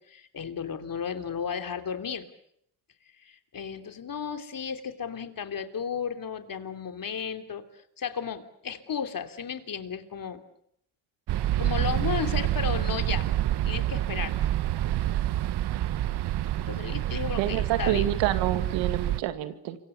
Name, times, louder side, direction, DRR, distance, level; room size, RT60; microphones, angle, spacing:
voice 1, 0.1-2.3 3.2-7.6 8.0-10.4 11.6-13.3 13.6-14.4 16.6-18.1, left 7 dB, 50° left, 7 dB, 3.2 m, -34 dB
sound 1, 11.3-19.2, right 13 dB, 65° right, 1.1 m, -27 dB
voice 2, 17.0-19.8, right 13 dB, 90° right, 10 dB, 2.2 m, -28 dB
29.0 x 24.5 x 7.1 m, 0.71 s
supercardioid pair, 65°, 43 cm